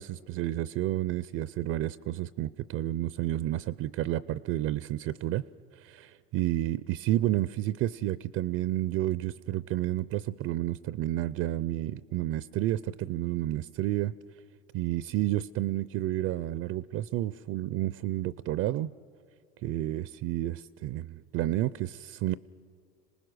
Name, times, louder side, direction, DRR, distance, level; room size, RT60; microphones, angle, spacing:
voice 1, 0.0-5.4 5.7-14.1 14.7-18.9 19.6-22.4, right 14 dB, 45° right, 18 dB, 0.5 m, -30 dB
26.5 x 19.5 x 6.3 m, 2.1 s
supercardioid pair, 100°, 33 cm